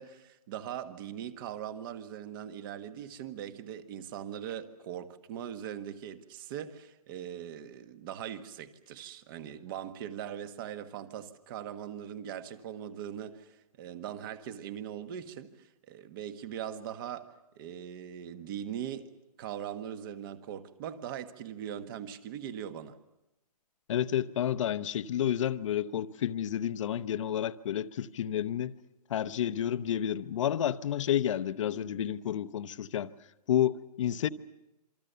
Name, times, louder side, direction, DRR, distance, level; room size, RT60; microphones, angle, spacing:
voice 1, 0.0-19.1 19.4-23.0, right 10 dB, 30° right, 1.4 m, -41 dB
voice 2, 23.9-28.7 29.1-33.1 33.5-34.3, left 10 dB, 50° left, 0.9 m, -30 dB
27.0 x 24.5 x 6.9 m
hypercardioid pair, 155°, 21 cm